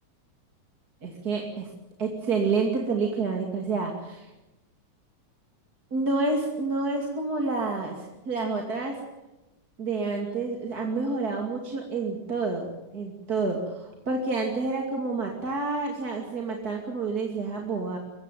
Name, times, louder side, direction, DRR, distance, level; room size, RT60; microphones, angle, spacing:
voice 1, 1.0-1.7 2.0-4.3 5.9-9.0 9.8-18.0, right 3 dB, 35° right, 1 dB, 2.8 m, -29 dB
23.5 x 16.0 x 9.3 m, 1.0 s
omnidirectional pair, 3.3 m